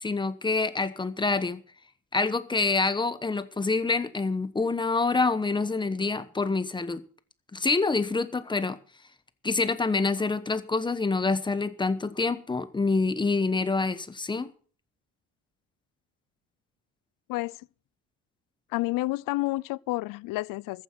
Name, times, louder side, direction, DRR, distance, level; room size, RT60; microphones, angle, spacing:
voice 1, 0.0-1.6 2.1-7.0 7.5-8.8 9.4-14.5, left 3 dB, 15° left, 1.0 m, -26 dB
voice 2, 18.7-20.8, left 20 dB, 85° left, 0.6 m, -30 dB
14.5 x 9.7 x 6.0 m
cardioid pair, 150°, 32 cm